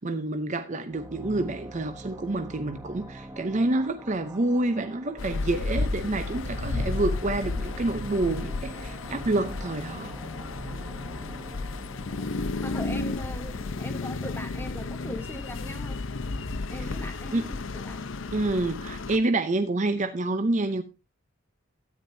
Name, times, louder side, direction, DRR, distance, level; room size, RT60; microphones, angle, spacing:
voice 1, 0.0-10.1 16.7-17.0 17.3-17.5 18.3-20.8, right 2 dB, 35° right, 0.7 m, -28 dB
sound 1, 0.9-14.2, right 1 dB, 10° right, 0.8 m, -44 dB
sound 2, 5.2-19.2, left 3 dB, 65° left, 0.7 m, -33 dB
voice 2, 12.6-16.0 16.7-18.0, left 1 dB, 10° left, 1.1 m, -40 dB
13.0 x 9.6 x 2.7 m
head